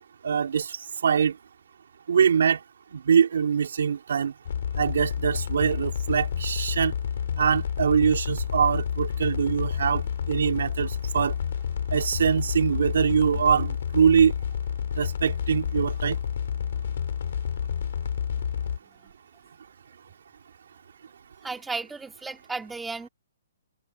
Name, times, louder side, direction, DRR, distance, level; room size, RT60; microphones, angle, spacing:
voice 1, 0.2-0.8 1.0-1.4 2.1-2.6 2.9-4.3 4.8-6.9 7.4-10.0 10.3-11.3 11.9-14.3 15.0-16.2, right 7 dB, 70° right, 4.0 m, -23 dB
sound 1, 4.5-18.8, left 8 dB, 65° left, 3.2 m, -29 dB
voice 2, 21.4-23.1, right 4 dB, 5° right, 2.3 m, -35 dB
hypercardioid pair, 155°, 0 cm